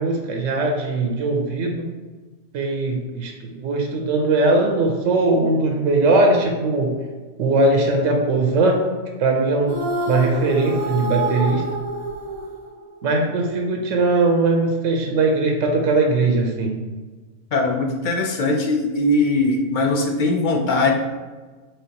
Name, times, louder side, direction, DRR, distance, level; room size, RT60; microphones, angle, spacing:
voice 1, 0.0-1.8 2.5-6.9 7.4-8.8 9.2-9.8 10.1-11.6 13.0-16.8, right 2 dB, 90° right, 2 dB, 1.1 m, -20 dB
sound 1, 9.7-13.1, right 2 dB, 55° right, 0.4 m, -27 dB
voice 2, 17.5-20.9, left 2 dB, 55° left, 1 dB, 0.6 m, -20 dB
4.4 x 3.7 x 2.8 m, 1.3 s
omnidirectional pair, 1.3 m